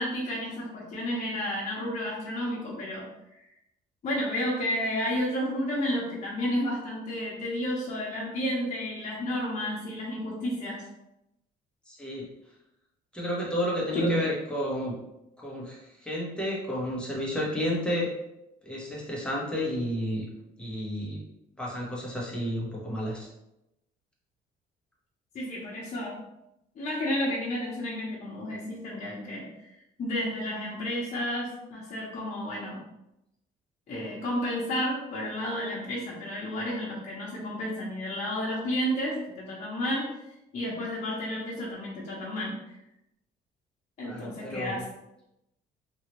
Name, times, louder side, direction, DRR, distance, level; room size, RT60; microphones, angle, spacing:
voice 1, 0.0-3.0 4.0-10.8 13.9-14.1 25.3-26.2 26.8-29.5 30.0-32.8 33.9-40.1 40.5-42.7 44.0-44.8, left 1 dB, 45° left, -6 dB, 1.0 m, -31 dB
voice 2, 11.9-12.2 13.1-14.9 15.4-18.1 18.6-20.2 20.6-21.2 21.6-23.3 44.0-44.8, equal, 5° left, -5 dB, 1.1 m, -31 dB
3.1 x 2.8 x 3.0 m, 0.88 s
cardioid pair, 110°, 17 cm